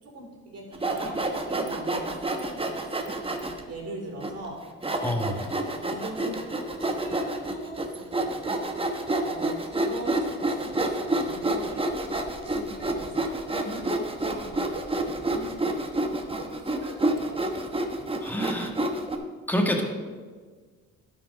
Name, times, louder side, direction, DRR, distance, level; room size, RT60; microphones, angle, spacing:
voice 1, 0.0-3.2 3.6-4.7 5.9-8.4 9.2-12.0 12.4-14.9 15.3-17.8, right 2 dB, 55° right, -2 dB, 3.2 m, -41 dB
Sawing, 0.7-3.6 4.2-4.3 4.8-19.2, right 2 dB, 20° right, 1.0 m, -29 dB
voice 2, 5.0-5.5 18.2-18.7 19.5-19.8, equal, 5° left, 1 dB, 1.6 m, -27 dB
12.0 x 4.9 x 5.1 m, 1.5 s
cardioid pair, 90°, 30 cm